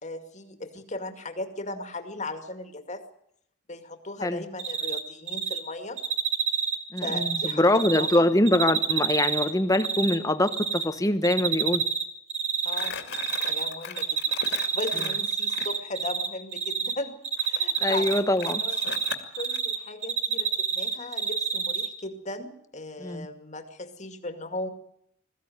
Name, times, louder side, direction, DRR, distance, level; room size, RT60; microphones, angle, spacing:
voice 1, 0.0-3.0 3.7-6.0 7.0-8.3 12.6-14.1 14.4-18.2 18.4-18.8 19.3-24.7, left 2 dB, 35° left, 7 dB, 2.3 m, -37 dB
Cricket, 4.6-5.0 5.3-5.6 6.0-8.2 8.5-10.1 10.5-10.8 11.2-12.0 12.3-13.7 14.0-16.3 16.5-16.9 17.2-19.8 20.0-21.9, right 6 dB, 35° right, 2.3 m, -27 dB
voice 2, 6.9-11.8 17.8-18.6 23.0-23.3, left 1 dB, 15° left, 10 dB, 1.1 m, -24 dB
Crumpling crinkling, 12.7-15.7 17.4-19.6, left 6 dB, 55° left, 2.4 m, -39 dB
21.5 x 15.5 x 9.3 m, 0.74 s
head